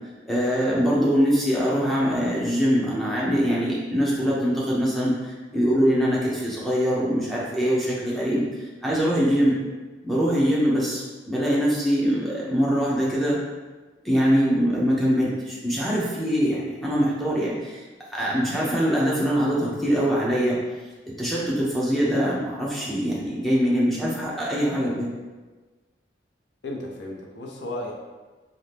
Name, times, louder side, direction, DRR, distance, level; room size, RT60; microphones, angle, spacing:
voice 1, 0.3-8.4 8.8-9.5 10.0-13.4 14.0-17.8 18.1-20.6 21.2-25.1, equal, ahead, -6 dB, 0.6 m, -23 dB
voice 2, 26.6-27.9, left 1 dB, 75° left, -1 dB, 0.6 m, -34 dB
2.8 x 2.5 x 3.3 m, 1.3 s
head